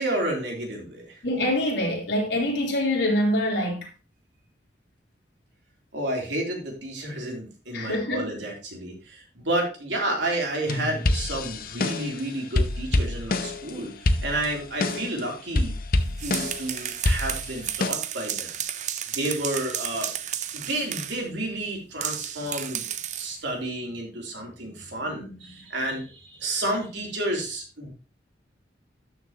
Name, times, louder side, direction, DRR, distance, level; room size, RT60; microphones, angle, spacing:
voice 1, 0.0-1.2 5.9-15.7 16.2-18.5 19.1-20.1 20.5-22.9 23.2-27.9, right 1 dB, 80° right, 3.1 m, -31 dB
voice 2, 1.2-3.9 7.7-8.3, left 1 dB, 80° left, 3.4 m, -25 dB
sound 1, 10.7-12.2 12.6-13.7 14.1-15.2 15.6-16.7 17.1-17.9, left 2 dB, 50° left, 0.7 m, -26 dB
sound 2, 16.0-21.2 22.0-23.4, right 10 dB, 40° right, 0.6 m, -33 dB
12.5 x 6.8 x 2.9 m
head